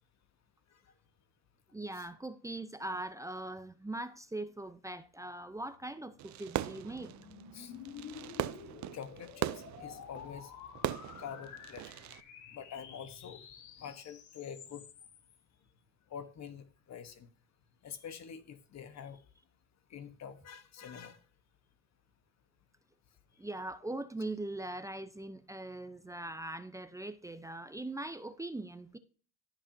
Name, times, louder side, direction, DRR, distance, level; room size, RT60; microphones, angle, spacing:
voice 1, 1.7-7.1 23.4-29.0, right 2 dB, 10° right, 0.6 m, -41 dB
sound 1, 5.7-15.4, left 8 dB, 80° left, 1.4 m, -51 dB
Fireworks, 6.2-12.2, right 13 dB, 70° right, 0.6 m, -40 dB
voice 2, 8.9-10.5 11.2-11.9 12.5-13.5 13.8-14.8 16.1-17.3 17.8-19.2 19.9-21.2, left 7 dB, 60° left, 1.2 m, -46 dB
15.0 x 6.1 x 2.7 m
cardioid pair, 90°, 30 cm